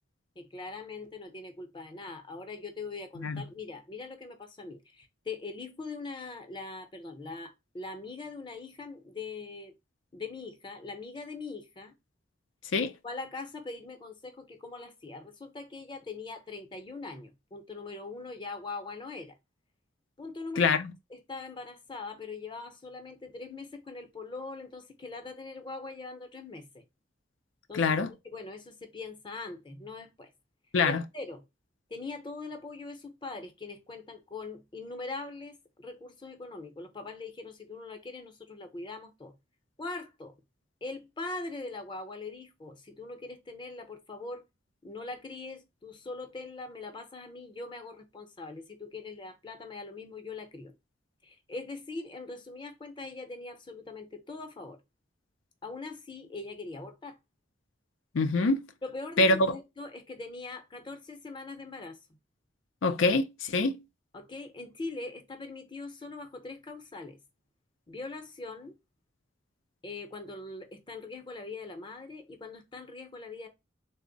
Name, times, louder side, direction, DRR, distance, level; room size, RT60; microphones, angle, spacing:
voice 1, 0.4-9.7 10.1-11.9 13.0-19.3 20.2-20.8 21.1-26.8 27.7-27.9 28.2-30.3 30.8-31.4 31.9-39.3 39.8-40.3 40.8-44.4 44.8-50.7 51.2-54.8 55.6-57.2 58.8-62.0 64.1-67.2 67.9-68.8 69.8-73.5, left 3 dB, 25° left, 0.7 m, -42 dB
voice 2, 20.6-20.9 27.7-28.1 30.7-31.0 58.1-58.6 59.2-59.6 62.8-63.8, left 3 dB, 85° left, 0.5 m, -25 dB
3.4 x 2.1 x 3.8 m
head